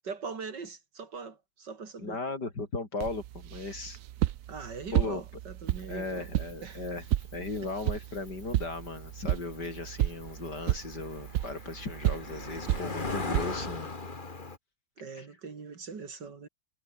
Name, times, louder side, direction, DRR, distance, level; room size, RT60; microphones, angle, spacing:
voice 1, 0.0-2.2 4.5-6.8 15.0-16.5, right 5 dB, 85° right, 3.4 m, -42 dB
voice 2, 2.0-4.0 4.9-5.2 5.9-7.0 7.3-13.9 15.1-15.3, left 3 dB, 70° left, 4.9 m, -37 dB
sound 1, 3.0-13.8, right 13 dB, 65° right, 0.8 m, -33 dB
Cricket, 5.7-14.6, left 3 dB, 30° left, 2.1 m, -40 dB
omnidirectional pair, 1.9 m